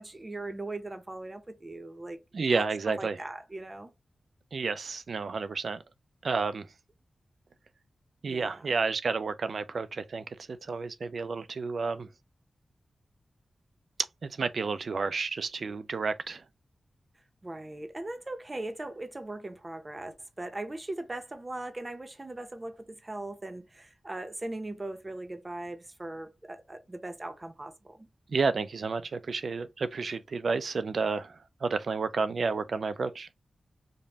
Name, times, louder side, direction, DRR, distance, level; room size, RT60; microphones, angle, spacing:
voice 1, 0.0-3.9 8.2-8.7 17.4-28.1, right 2 dB, 25° right, 0.7 m, -39 dB
voice 2, 2.3-3.2 4.5-5.8 6.2-6.7 8.2-10.2 10.7-12.1 14.2-16.4 28.3-31.3 31.6-33.3, right 4 dB, 60° right, 0.4 m, -30 dB
5.1 x 2.2 x 2.7 m
wide cardioid pair, 145°, 0 cm